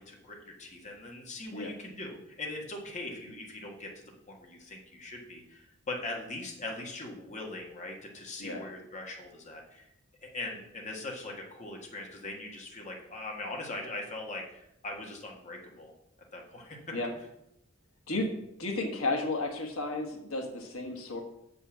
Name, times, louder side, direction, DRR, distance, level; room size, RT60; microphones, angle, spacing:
voice 1, 0.0-9.9 10.2-15.9 16.3-16.9, left 2 dB, 35° left, 0 dB, 1.6 m, -41 dB
voice 2, 18.6-21.2, left 2 dB, 85° left, 3 dB, 1.5 m, -33 dB
6.8 x 5.5 x 7.3 m, 0.81 s
head